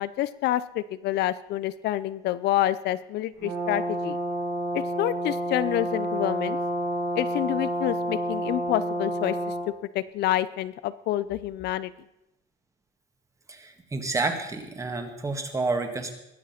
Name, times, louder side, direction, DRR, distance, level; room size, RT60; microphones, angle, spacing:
voice 1, 0.0-4.2 4.7-6.6 7.2-9.4 9.9-11.9, left 14 dB, 65° left, 15 dB, 0.6 m, -28 dB
Brass instrument, 3.4-9.7, right 1 dB, 85° right, 6.9 m, -29 dB
voice 2, 13.5-16.1, right 3 dB, 15° right, 6 dB, 1.8 m, -29 dB
21.0 x 7.5 x 5.8 m, 0.89 s
cardioid pair, 140°, 19 cm